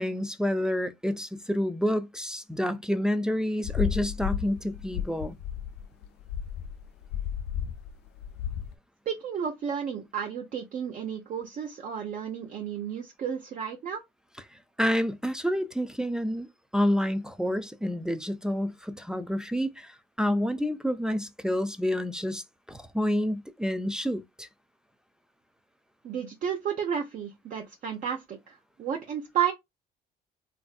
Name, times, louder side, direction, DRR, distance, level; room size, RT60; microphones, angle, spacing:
voice 1, 0.0-5.4 14.8-16.5 16.7-24.5, equal, 5° right, 0.3 m, -28 dB
sound 1, 3.6-8.7, left 9 dB, 80° left, 0.5 m, -33 dB
voice 2, 9.1-14.0 26.0-29.5, right 8 dB, 45° right, 0.6 m, -32 dB
3.3 x 2.5 x 2.2 m
cardioid pair, 110°, 17 cm